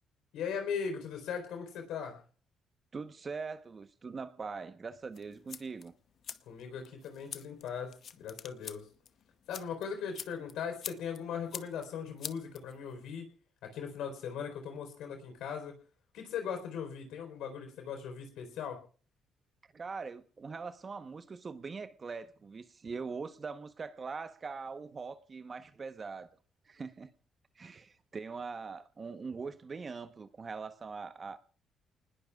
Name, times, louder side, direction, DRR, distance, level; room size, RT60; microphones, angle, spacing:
voice 1, 0.3-2.2 6.5-8.9 9.5-13.3 13.6-15.7 16.1-18.8, left 7 dB, 90° left, 4.1 m, -39 dB
voice 2, 2.9-5.9 19.7-26.3 26.7-27.1 27.6-31.4, right 4 dB, 35° right, 1.0 m, -42 dB
sound 1, 5.1-13.1, left 8 dB, 60° left, 0.9 m, -47 dB
29.0 x 20.0 x 2.4 m
cardioid pair, 90°, 0 cm